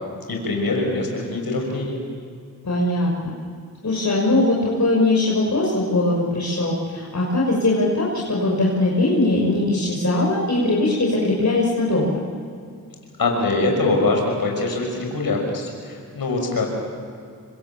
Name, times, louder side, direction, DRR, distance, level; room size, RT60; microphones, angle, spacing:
voice 1, 0.3-2.0 13.2-16.7, left 2 dB, 70° left, 1 dB, 6.1 m, -23 dB
voice 2, 2.6-3.3 3.8-12.1, left 2 dB, 50° left, -3 dB, 5.9 m, -20 dB
26.0 x 25.5 x 7.2 m, 2.3 s
cardioid pair, 45°, 37 cm